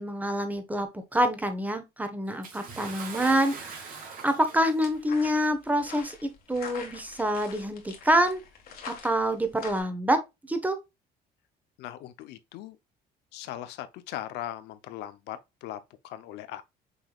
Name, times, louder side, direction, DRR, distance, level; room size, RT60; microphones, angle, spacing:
voice 1, 0.0-6.1 6.5-8.4 9.0-10.2 10.5-10.8, equal, 10° right, 1.0 m, -26 dB
Bathtub (filling or washing) / Splash splatter, 2.4-5.0 6.0-6.1 7.0-7.1, right 5 dB, 55° right, 2.0 m, -41 dB
sound 1, 4.8-9.8, left 6 dB, 60° left, 1.7 m, -45 dB
voice 2, 11.8-12.8 13.3-16.6, left 12 dB, 85° left, 0.6 m, -39 dB
6.1 x 3.5 x 2.3 m
cardioid pair, 110°, 17 cm